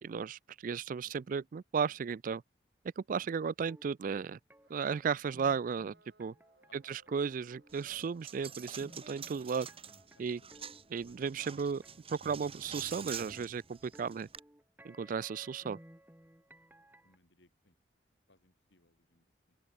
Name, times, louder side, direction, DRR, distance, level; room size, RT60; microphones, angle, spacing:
voice 1, 0.0-2.4 3.0-4.4 4.7-6.3 6.7-9.7 10.2-10.4 10.9-11.8 12.1-14.3 14.8-15.8, right 6 dB, 45° right, 0.3 m, -35 dB
sound 1, 3.7-17.2, right 1 dB, 10° right, 2.2 m, -59 dB
sound 2, 4.6-10.1, right 2 dB, 65° right, 7.5 m, -67 dB
voice 2, 6.7-7.0 10.2-10.7 11.0-11.3 11.6-11.8 17.0-17.7 18.3-19.2, left 2 dB, 75° left, 4.2 m, -67 dB
Coin (dropping), 7.7-14.4, right 7 dB, 30° right, 5.6 m, -48 dB
open air
head